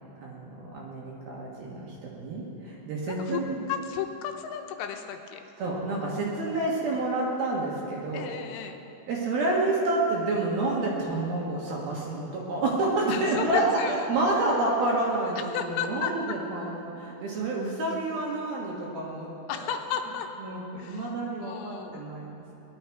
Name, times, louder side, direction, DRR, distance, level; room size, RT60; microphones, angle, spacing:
voice 1, 0.2-3.6 5.6-8.3 9.1-19.6 20.4-22.4, right 2 dB, 65° right, -4 dB, 2.7 m, -29 dB
voice 2, 3.1-3.4 3.7-5.5 8.1-8.8 13.1-14.1 15.4-16.4 19.5-20.3 20.8-21.1 21.4-22.0, left 9 dB, 80° left, 5 dB, 3.2 m, -34 dB
20.5 x 11.5 x 4.7 m, 3.0 s
omnidirectional pair, 5.8 m